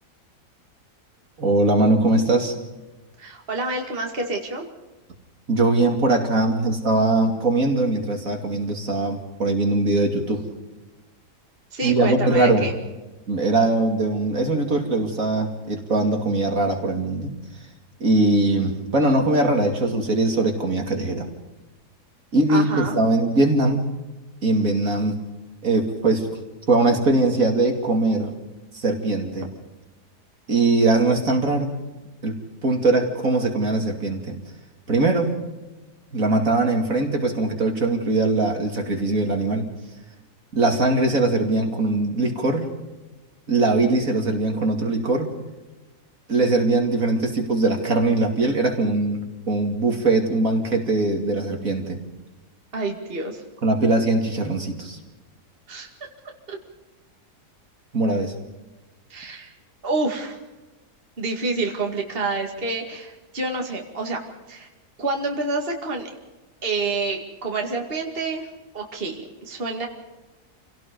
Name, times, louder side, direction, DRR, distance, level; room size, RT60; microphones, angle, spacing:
voice 1, 1.4-2.6 5.5-10.4 11.8-12.7 13.3-17.3 18.0-21.2 22.3-23.8 24.4-25.2 25.6-26.3 26.7-28.3 28.7-29.5 30.5-31.7 32.2-34.4 34.9-35.4 36.1-39.7 40.5-42.7 43.5-45.3 46.3-52.0 53.6-55.0 57.9-58.3, right 2 dB, 55° right, 3 dB, 2.9 m, -21 dB
voice 2, 3.2-4.7 11.7-12.7 22.5-23.0 52.7-53.4 55.7-56.1 56.5-56.6 59.1-59.5 59.8-60.4 61.2-64.2 64.5-64.7 65.0-66.1 66.6-68.5 68.7-69.9, right 3 dB, 35° right, 2 dB, 2.5 m, -28 dB
28.5 x 17.5 x 5.3 m, 1.1 s
omnidirectional pair, 1.7 m